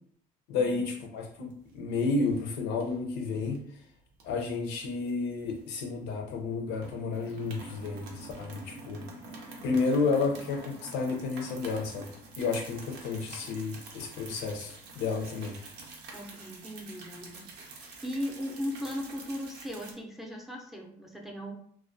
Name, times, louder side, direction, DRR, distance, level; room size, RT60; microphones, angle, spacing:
voice 1, 0.5-3.6 4.2-9.0 9.6-15.5, left 4 dB, 85° left, 3 dB, 0.5 m, -31 dB
sound 1, 1.2-1.9 2.2-2.4 2.8-3.6 4.2-6.1 6.4-6.5 6.8-19.9, right 3 dB, 80° right, 0.6 m, -47 dB
voice 2, 16.1-21.5, equal, ahead, 0 dB, 0.5 m, -38 dB
2.3 x 2.2 x 2.5 m, 0.62 s
cardioid pair, 110°, 17 cm